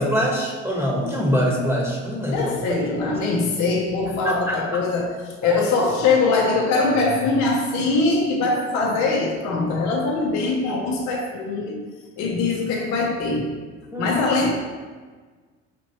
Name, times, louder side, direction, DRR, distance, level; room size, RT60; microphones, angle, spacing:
voice 1, 0.0-2.4 3.0-3.1 4.2-4.6 5.4-5.5 13.9-14.1, equal, 5° right, -3 dB, 1.1 m, -23 dB
voice 2, 2.3-11.8 12.2-13.6 14.0-14.5, left 3 dB, 60° left, -1 dB, 0.7 m, -22 dB
5.1 x 3.0 x 2.8 m, 1.4 s
supercardioid pair, 85°, 32 cm